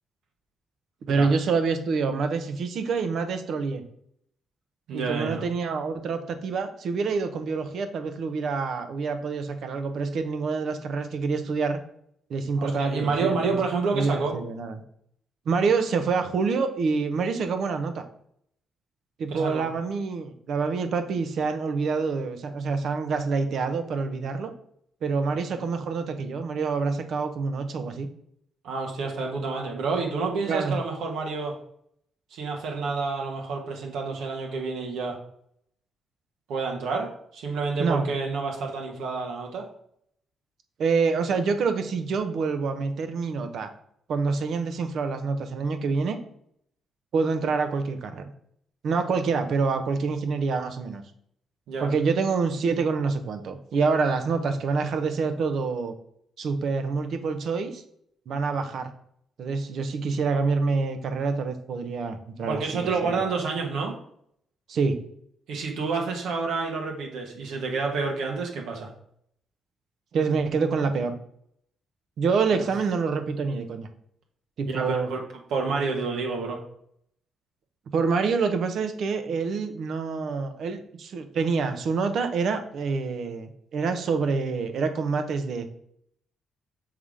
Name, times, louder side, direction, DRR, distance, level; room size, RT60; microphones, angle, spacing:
voice 1, 1.1-3.8 4.9-11.8 12.3-13.6 13.9-14.8 15.5-18.0 19.2-24.5 25.0-28.1 30.5-30.8 37.8-38.1 40.8-43.7 44.1-46.2 47.1-48.2 48.8-51.0 51.8-55.9 56.4-57.8 58.3-58.9 59.4-63.1 64.7-65.0 70.1-71.1 72.2-73.9 74.6-75.1 77.9-85.7, right 4 dB, 65° right, 8 dB, 0.9 m, -26 dB
voice 2, 4.9-5.4 12.6-14.4 19.3-19.6 25.4-25.5 28.6-31.6 32.3-35.2 36.5-39.7 51.7-51.9 62.5-64.0 65.5-68.9 72.5-72.6 74.7-75.2 75.5-76.6, right 4 dB, 80° right, 1 dB, 1.2 m, -29 dB
5.7 x 3.7 x 4.8 m, 0.69 s
cardioid pair, 90°, 0 cm